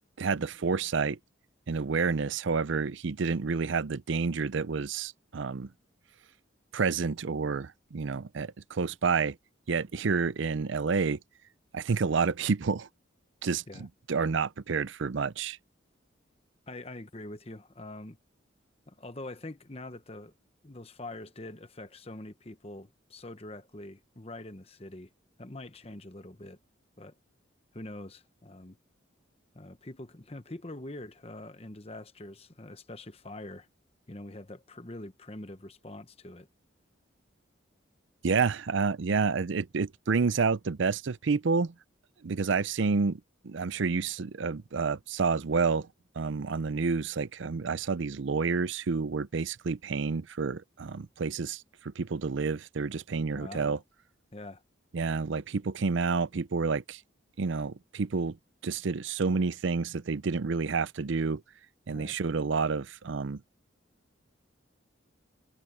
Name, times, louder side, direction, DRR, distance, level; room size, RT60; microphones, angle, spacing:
voice 1, 0.2-1.2 1.7-5.7 6.7-9.4 9.7-11.2 11.7-12.9 13.4-15.6 38.2-41.7 42.2-45.9 46.2-53.8 54.9-57.0 57.4-58.4 58.6-61.4 61.9-63.4, right 4 dB, 70° right, 0.5 m, -29 dB
voice 2, 16.7-18.2 18.9-20.3 20.6-25.1 25.4-26.6 27.0-27.1 27.7-28.8 29.5-33.7 34.1-36.5 53.3-53.8 54.3-54.6 61.9-62.2, left 2 dB, 30° left, 1.1 m, -44 dB
head